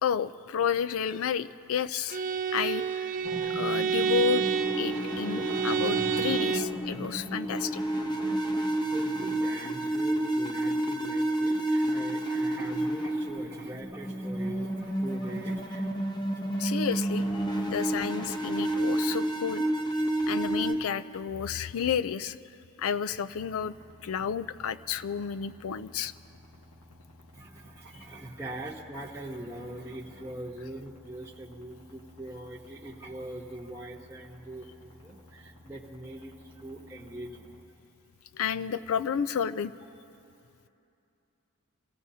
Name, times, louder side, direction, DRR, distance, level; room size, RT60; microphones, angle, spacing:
voice 1, 0.0-2.2 2.5-3.1 3.5-7.8 16.6-22.4 22.8-23.7 24.0-26.1 38.3-39.7, left 7 dB, 65° left, 13 dB, 0.4 m, -31 dB
Bowed string instrument, 2.1-6.8, right 7 dB, 40° right, 0.5 m, -29 dB
sound 1, 3.2-20.7, right 1 dB, 20° left, 0.8 m, -30 dB
voice 2, 8.9-16.5 17.7-17.8 20.0-20.3 27.3-37.5, right 1 dB, 10° right, -4 dB, 1.0 m, -42 dB
sound 2, 23.1-37.6, left 1 dB, 90° left, 1.5 m, -55 dB
26.0 x 16.5 x 2.8 m, 2.7 s
head